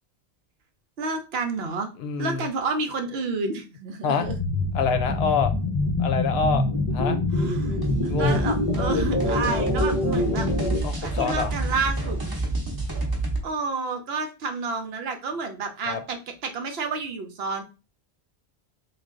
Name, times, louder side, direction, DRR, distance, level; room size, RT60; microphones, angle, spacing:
voice 1, 1.0-1.9 2.2-4.4 7.3-7.7 8.0-10.5 11.0-12.2 13.4-17.6, right 4 dB, 70° right, 6 dB, 0.9 m, -30 dB
voice 2, 2.0-2.5 4.0-4.3 4.7-5.5 6.0-6.6 6.9-7.2 8.1-8.5 10.8-11.5 15.9-16.0, left 5 dB, 70° left, 9 dB, 0.8 m, -26 dB
sound 1, 4.2-10.8, left 2 dB, 40° left, 0.6 m, -25 dB
sound 2, 7.8-13.4, right 2 dB, 25° right, 0.8 m, -29 dB
3.2 x 2.3 x 3.6 m, 0.31 s
omnidirectional pair, 1.1 m